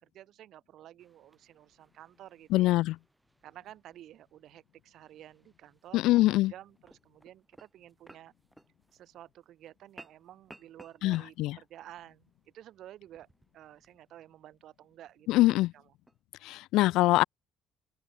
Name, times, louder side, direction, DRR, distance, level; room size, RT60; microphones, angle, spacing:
voice 1, 0.0-2.8 3.4-8.3 8.9-13.3 13.5-15.8, right 12 dB, 60° right, 2.0 m, -52 dB
sound 1, 1.0-16.2, right 1 dB, 10° right, 4.7 m, -61 dB
voice 2, 2.5-3.0 5.9-6.5 11.0-11.6 15.3-15.7 16.4-17.2, left 17 dB, 65° left, 0.4 m, -24 dB
open air
hypercardioid pair, 55°, 0 cm